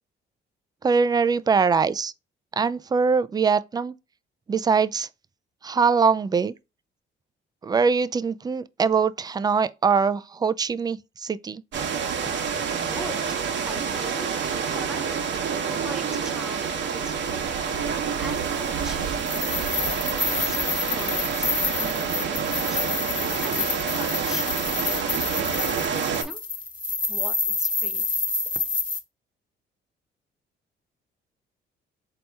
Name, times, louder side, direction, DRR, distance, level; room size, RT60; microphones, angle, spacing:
voice 1, 0.8-2.1 2.6-3.9 4.5-5.1 5.6-6.5 7.6-11.6, right 5 dB, 20° right, 0.3 m, -22 dB
sound 1, 11.7-26.2, right 6 dB, 65° right, 0.9 m, -28 dB
voice 2, 12.3-15.2 15.7-17.5 18.1-19.7 20.4-23.0 23.4-23.6 23.9-24.6 25.2-26.4 27.1-28.1, right 1 dB, 5° right, 0.9 m, -41 dB
sound 2, 19.2-29.0, left 4 dB, 20° left, 1.4 m, -28 dB
4.2 x 2.9 x 3.4 m
cardioid pair, 90°, 20 cm